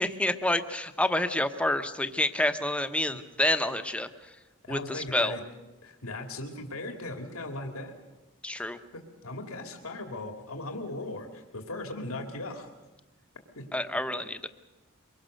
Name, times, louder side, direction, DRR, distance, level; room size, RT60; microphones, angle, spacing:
voice 1, 0.0-4.1 4.7-5.3 8.4-8.8 13.7-14.5, left 1 dB, 5° left, 8 dB, 1.0 m, -28 dB
voice 2, 4.6-5.4 5.8-7.9 8.5-8.6 9.2-12.7 13.6-13.7, left 2 dB, 90° left, 3 dB, 2.4 m, -38 dB
24.0 x 22.5 x 6.6 m, 1.1 s
head